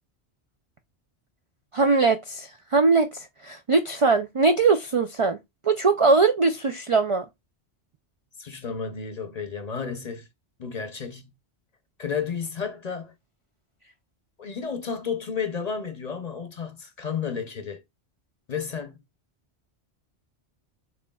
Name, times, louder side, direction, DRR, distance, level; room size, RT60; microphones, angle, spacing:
voice 1, 1.7-5.4 5.6-7.3, right 4 dB, 55° right, 0.3 m, -21 dB
voice 2, 8.4-10.3 10.6-11.2 12.0-13.1 14.4-17.8 18.5-18.9, left 6 dB, 45° left, 0.7 m, -32 dB
6.8 x 3.1 x 2.3 m
omnidirectional pair, 1.1 m